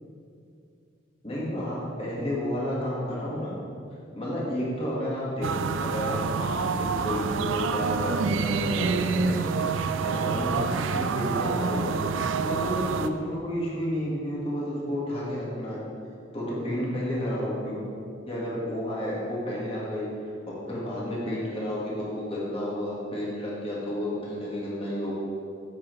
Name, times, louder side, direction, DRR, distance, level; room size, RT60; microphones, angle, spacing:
voice 1, 1.2-3.5 4.1-9.5 10.0-11.9 12.4-15.8 16.3-17.8 18.3-20.1 20.5-25.1, equal, 30° left, -6 dB, 1.7 m, -31 dB
sound 1, 5.4-13.1, right 5 dB, 75° right, 0.4 m, -27 dB
9.6 x 7.5 x 3.2 m, 2.5 s
head